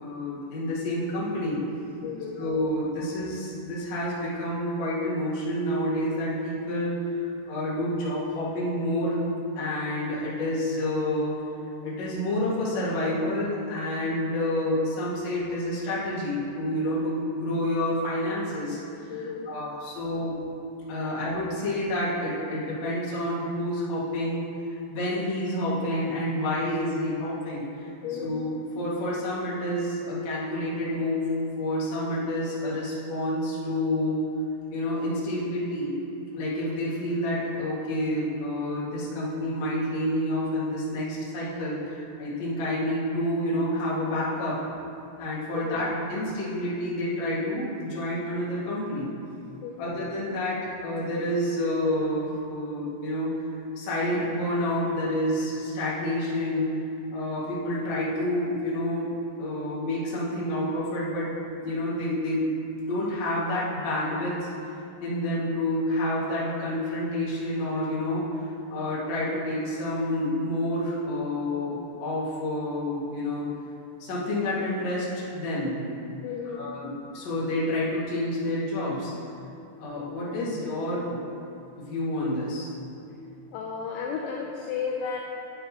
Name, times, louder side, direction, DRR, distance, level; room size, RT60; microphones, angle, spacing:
voice 1, 0.0-1.6 2.4-7.0 7.5-9.2 9.6-11.3 11.8-18.8 19.2-20.4 20.9-24.5 24.9-27.6 28.2-34.2 34.7-35.9 36.3-44.6 45.2-49.1 49.8-53.4 53.8-56.7 57.1-59.1 59.4-61.3 61.6-62.5 62.8-64.5 65.0-68.2 68.7-73.5 74.0-75.8 76.5-79.1 79.8-81.2 81.8-82.7, left 1 dB, 55° left, -8 dB, 1.9 m, -29 dB
voice 2, 2.0-2.4 16.8-16.9 19.1-19.5 21.0-21.1 28.0-28.4 45.5-45.8 49.6-49.9 76.2-76.6 83.5-85.2, left 6 dB, 85° left, -1 dB, 2.6 m, -33 dB
8.9 x 8.6 x 2.8 m, 2.6 s
omnidirectional pair, 5.8 m